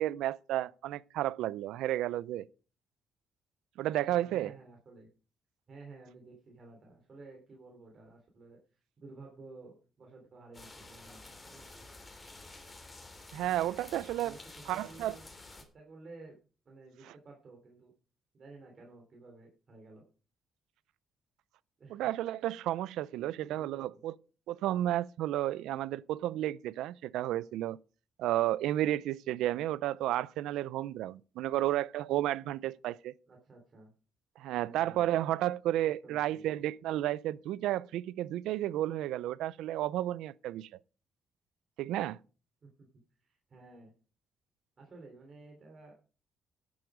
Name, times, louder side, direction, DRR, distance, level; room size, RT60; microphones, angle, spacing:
voice 1, 0.0-2.4 3.8-4.5 13.3-14.4 14.7-15.1 21.9-24.1 24.5-27.8 28.2-33.1 34.4-40.7 41.8-42.2, right 13 dB, 90° right, 0.4 m, -32 dB
voice 2, 4.0-5.1 5.7-11.8 14.2-15.3 15.7-16.4 16.7-17.9 18.3-20.0 21.8-22.1 23.2-24.0 33.3-33.9 34.6-35.1 36.0-36.4 42.6-42.9 43.2-43.9 44.8-45.9, right 3 dB, 45° right, 3.5 m, -53 dB
sound 1, 10.5-15.6, left 2 dB, 20° left, 3.4 m, -51 dB
11.5 x 8.6 x 5.0 m
cardioid pair, 90°, 0 cm